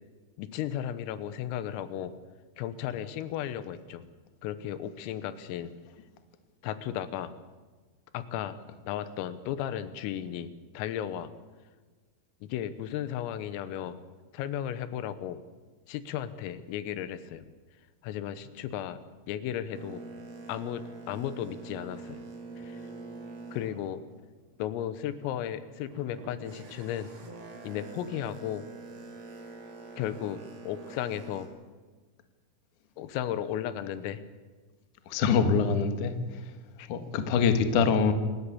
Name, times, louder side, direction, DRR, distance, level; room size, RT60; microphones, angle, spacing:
voice 1, 0.4-2.2 2.6-4.1 4.4-5.7 6.6-7.3 8.1-8.6 8.9-11.3 12.4-14.0 14.3-15.4 15.9-17.5 18.0-19.0 19.3-20.0 20.5-22.2 22.6-22.8 23.5-24.0 24.6-27.1 27.6-28.7 30.0-31.5 33.0-34.2 36.8-36.9, left 10 dB, 85° left, 13 dB, 3.7 m, -35 dB
Boat Water vehicle, 19.7-24.7 25.2-31.5, right 3 dB, 45° right, 4.2 m, -45 dB
voice 2, 35.1-36.1 36.9-38.1, left 5 dB, 60° left, 8 dB, 2.1 m, -24 dB
28.0 x 12.5 x 8.5 m, 1.4 s
omnidirectional pair, 5.9 m